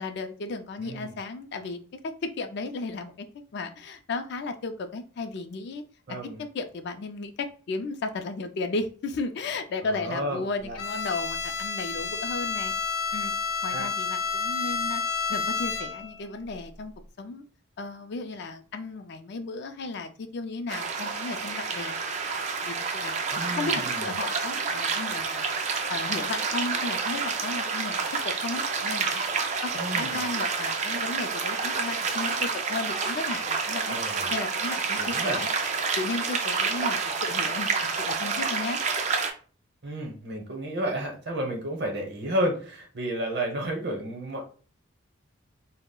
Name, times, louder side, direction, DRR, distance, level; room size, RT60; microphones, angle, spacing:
voice 1, 0.0-3.3 3.5-5.8 6.5-12.7 13.1-13.3 13.6-15.0 15.3-16.9 17.2-17.4 17.8-22.0 22.6-23.1 23.6-28.0 28.4-34.0 34.3-35.5 35.9-37.7 37.9-38.8, left 3 dB, 55° left, 8 dB, 0.3 m, -34 dB
voice 2, 0.8-1.1 6.1-6.4 10.0-10.8 13.7-13.9 23.3-24.1 29.8-30.2 33.9-34.3 35.0-35.4 39.8-44.4, right 1 dB, 50° right, 1 dB, 0.8 m, -31 dB
Bowed string instrument, 10.8-16.2, left 5 dB, 90° left, 0.6 m, -30 dB
sound 1, 20.7-39.3, right 5 dB, 35° right, 0.3 m, -29 dB
2.3 x 2.0 x 3.6 m, 0.40 s
head